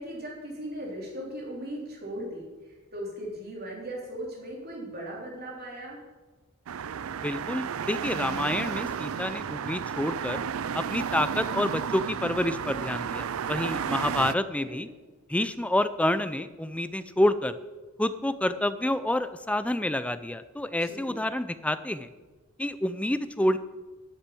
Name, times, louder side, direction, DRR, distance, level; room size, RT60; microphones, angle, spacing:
voice 1, 0.0-6.0 14.3-14.8 20.8-21.2, right 1 dB, 50° right, -2 dB, 3.5 m, -38 dB
sound 1, 6.7-14.3, right 7 dB, 90° right, 0.4 m, -32 dB
voice 2, 7.2-10.4 10.7-14.9 15.3-17.6 18.0-22.1 22.6-23.6, left 1 dB, 5° left, 12 dB, 0.4 m, -28 dB
11.0 x 7.3 x 7.0 m, 1.3 s
head